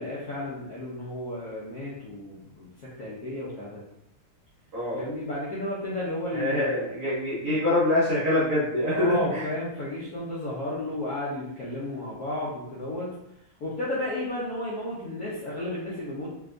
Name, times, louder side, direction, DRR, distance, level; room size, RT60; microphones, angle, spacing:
voice 1, 0.0-3.8 4.9-6.9 8.9-13.1 13.6-16.3, left 1 dB, 70° left, -7 dB, 0.9 m, -33 dB
voice 2, 6.3-9.4, left 1 dB, 50° right, -8 dB, 1.0 m, -25 dB
3.5 x 3.0 x 2.5 m, 0.78 s
omnidirectional pair, 2.4 m